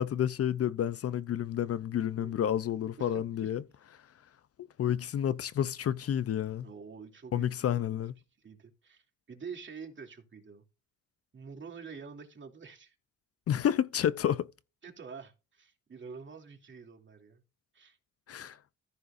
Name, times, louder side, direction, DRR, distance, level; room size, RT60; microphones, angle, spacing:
voice 1, 0.0-3.6 4.8-6.7 7.3-8.1 13.5-14.5 18.3-18.6, left 10 dB, 50° left, 0.7 m, -30 dB
voice 2, 6.6-7.8 8.4-10.6 11.3-12.9 14.8-17.4 17.7-18.0, right 5 dB, 40° right, 2.9 m, -47 dB
14.5 x 6.5 x 2.6 m
cardioid pair, 90°, 30 cm